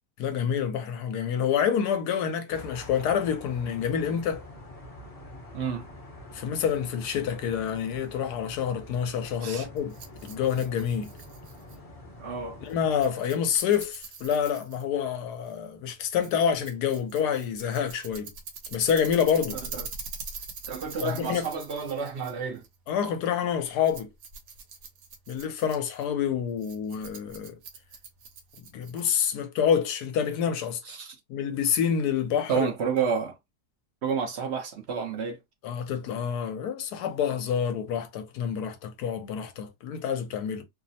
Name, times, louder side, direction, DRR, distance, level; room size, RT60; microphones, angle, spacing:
voice 1, 0.2-4.4 6.3-9.9 10.2-11.1 12.6-18.3 18.7-19.6 21.0-21.5 22.9-24.1 25.3-27.6 28.7-30.8 31.3-32.7 35.6-40.6, left 8 dB, 75° left, 1.2 m, -27 dB
sound 1, 2.5-13.1, left 1 dB, 35° left, 0.6 m, -46 dB
voice 2, 5.5-5.8 9.4-9.7 12.2-12.6 19.7-19.9 20.7-22.6 30.8-31.1 32.5-33.4 34.0-35.4, right 6 dB, 60° right, 0.7 m, -30 dB
Rattle, 9.8-29.3, right 5 dB, 80° right, 1.3 m, -44 dB
3.1 x 2.0 x 2.6 m
omnidirectional pair, 1.7 m